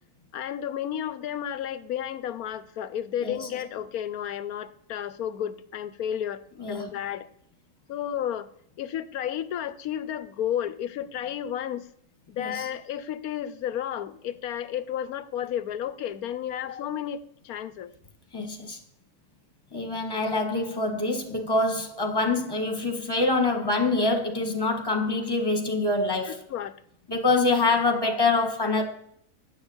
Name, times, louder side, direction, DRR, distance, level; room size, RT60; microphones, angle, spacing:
voice 1, 0.3-7.3 7.9-8.5 8.8-11.9 12.3-17.9 26.3-26.8, left 10 dB, 70° left, 1.1 m, -32 dB
voice 2, 18.3-18.8 19.7-26.4 27.1-28.8, left 3 dB, 15° left, 1.7 m, -25 dB
11.0 x 6.6 x 8.8 m
omnidirectional pair, 1.7 m